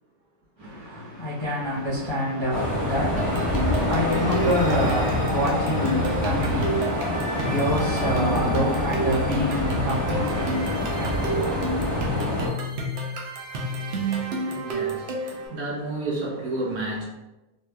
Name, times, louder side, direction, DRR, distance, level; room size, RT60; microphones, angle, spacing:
voice 1, 0.6-12.0, equal, 40° left, -9 dB, 0.4 m, -28 dB
sound 1, 2.5-12.5, left 1 dB, ahead, 1.2 m, -26 dB
sound 2, 3.2-15.5, right 1 dB, 60° right, 0.7 m, -30 dB
voice 2, 13.8-17.0, right 2 dB, 85° right, -4 dB, 1.4 m, -32 dB
3.3 x 2.8 x 2.3 m, 1.0 s
omnidirectional pair, 1.5 m